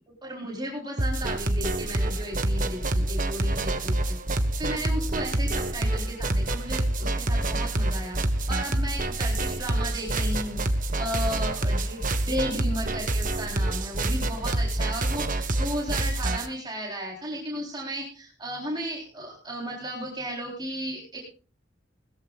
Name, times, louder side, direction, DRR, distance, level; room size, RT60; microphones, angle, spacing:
voice 1, 0.2-4.2 4.6-10.6 11.0-21.2, equal, 25° right, -3 dB, 3.8 m, -34 dB
sound 1, 1.0-16.5, right 1 dB, 45° right, 1.4 m, -27 dB
20.5 x 14.0 x 2.4 m, 0.37 s
head